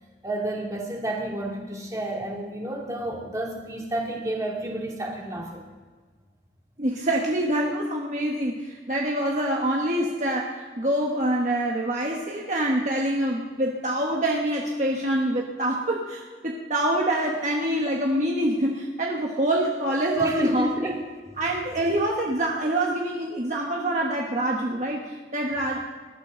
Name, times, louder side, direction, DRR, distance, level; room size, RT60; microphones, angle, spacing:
voice 1, 0.2-5.6 20.2-21.0 21.8-21.9, right 1 dB, 20° right, -2 dB, 2.6 m, -30 dB
voice 2, 6.8-20.7 21.4-25.8, right 1 dB, 40° right, -1 dB, 1.4 m, -25 dB
21.0 x 12.0 x 3.9 m, 1.5 s
head